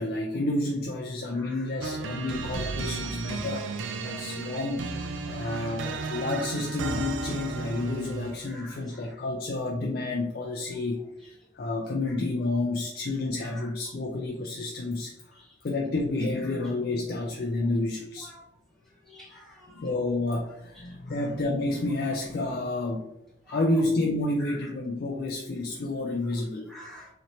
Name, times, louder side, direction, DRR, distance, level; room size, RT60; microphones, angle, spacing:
voice 1, 0.0-3.7 4.0-5.0 5.3-15.1 15.6-18.3 19.8-23.0 23.5-26.7, left 2 dB, 50° left, 0 dB, 0.4 m, -30 dB
sound 1, 1.8-8.5, right 4 dB, 85° right, 0.4 m, -34 dB
voice 2, 5.4-5.7 8.5-8.8 18.2-18.3 19.0-19.9 23.5-23.6 24.5-24.6 26.7-27.1, left 1 dB, ahead, -5 dB, 1.0 m, -46 dB
4.1 x 2.8 x 3.0 m, 0.84 s
head